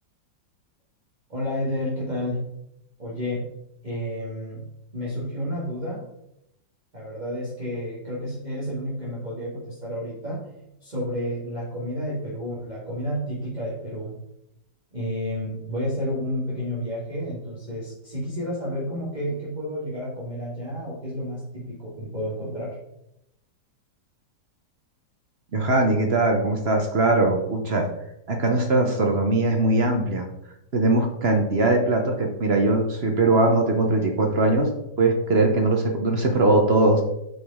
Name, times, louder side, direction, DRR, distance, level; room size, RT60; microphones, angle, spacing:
voice 1, 1.3-2.4 3.0-3.4 3.8-4.6 4.9-6.0 6.9-10.4 10.8-14.1 14.9-22.8, equal, 25° right, -8 dB, 1.8 m, -30 dB
voice 2, 25.5-27.9 28.3-30.2 30.7-34.7 35.0-37.0, right 2 dB, 50° right, 3 dB, 0.8 m, -21 dB
7.9 x 5.0 x 3.6 m, 0.82 s
omnidirectional pair, 1.9 m